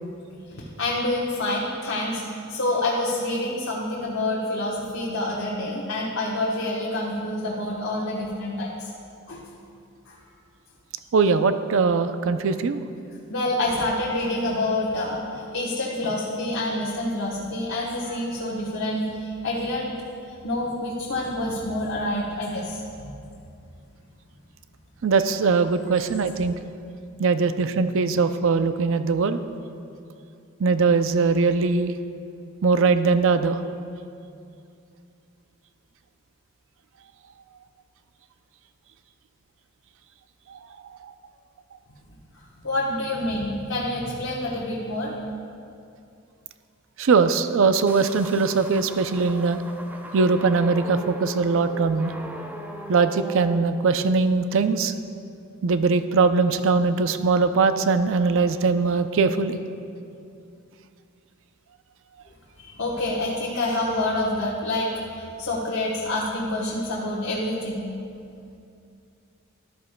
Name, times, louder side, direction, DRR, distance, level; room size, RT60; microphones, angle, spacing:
voice 1, 0.6-2.2 2.5-8.9 9.3-9.4 10.1-10.2 13.3-20.0 20.4-23.1 42.6-45.1 62.6-67.9, left 1 dB, 65° left, -5 dB, 1.2 m, -27 dB
voice 2, 11.1-12.8 25.0-26.5 27.2-29.4 30.6-31.9 32.6-33.6 47.0-49.6 50.1-52.1 52.9-54.9 55.6-59.6, right 4 dB, 65° right, 10 dB, 0.4 m, -21 dB
sound 1, 47.9-53.6, right 1 dB, 10° right, 0.5 m, -39 dB
13.5 x 12.0 x 2.2 m, 2.5 s
head